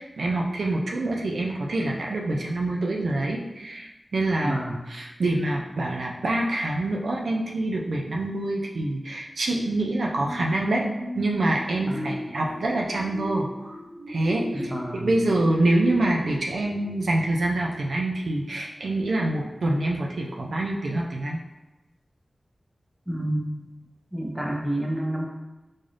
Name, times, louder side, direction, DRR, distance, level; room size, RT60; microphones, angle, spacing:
voice 1, 0.0-4.6 4.9-10.8 11.2-13.8 14.1-21.4, right 2 dB, 90° right, -1 dB, 0.4 m, -26 dB
voice 2, 4.4-4.8 11.9-12.1 14.5-15.2 23.1-23.7 24.1-25.3, right 1 dB, 10° right, -1 dB, 0.6 m, -29 dB
sound 1, 10.2-17.6 18.1-18.2, equal, 55° right, 1.1 m, -37 dB
3.9 x 2.5 x 3.3 m, 1.1 s
wide cardioid pair, 95°, 0 cm